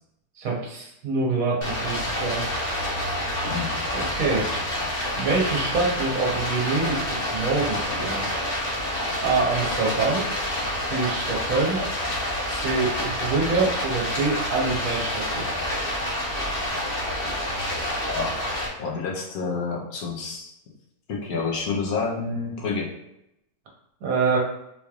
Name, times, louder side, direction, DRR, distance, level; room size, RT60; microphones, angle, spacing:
voice 1, 0.4-2.5 3.9-4.5 5.2-8.2 9.2-10.2 10.9-11.8 12.5-15.4 24.0-24.4, right 4 dB, 60° right, -2 dB, 1.3 m, -25 dB
Stream, 1.6-18.7, left 1 dB, 45° left, 0.8 m, -28 dB
voice 2, 18.0-18.5 18.8-20.5 21.1-22.9, left 4 dB, 70° left, -2 dB, 1.1 m, -29 dB
3.9 x 3.1 x 2.3 m, 0.82 s
omnidirectional pair, 1.7 m